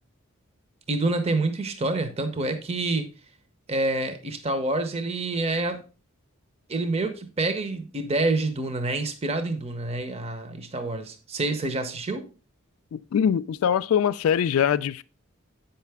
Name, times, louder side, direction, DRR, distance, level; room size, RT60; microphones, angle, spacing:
voice 1, 0.9-3.1 3.7-5.8 6.7-12.2, right 2 dB, 30° right, 0.7 m, -27 dB
voice 2, 12.9-15.0, left 8 dB, 75° left, 0.3 m, -23 dB
8.3 x 5.7 x 3.4 m
head